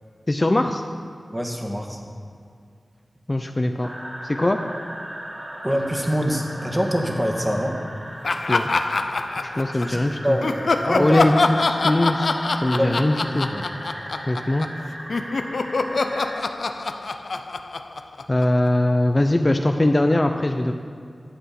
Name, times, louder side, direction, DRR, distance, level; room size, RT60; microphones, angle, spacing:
voice 1, 0.3-0.8 3.3-3.9 4.2-4.6 8.5-8.7 9.5-10.4 11.0-11.3 11.6-13.5 14.3-14.7 18.3-20.7, left 1 dB, 35° left, 5 dB, 0.6 m, -21 dB
voice 2, 1.3-2.0 5.6-7.8 9.7-10.0 10.2-11.4 12.7-13.7, equal, 15° right, 1 dB, 1.7 m, -25 dB
sound 1, 3.8-16.4, equal, 35° right, 2.6 m, -37 dB
Laughter, 8.2-10.0 10.4-14.8 15.1-18.7, left 3 dB, 80° left, 0.6 m, -25 dB
11.0 x 7.9 x 5.8 m, 2.4 s
wide cardioid pair, 55°, 0 cm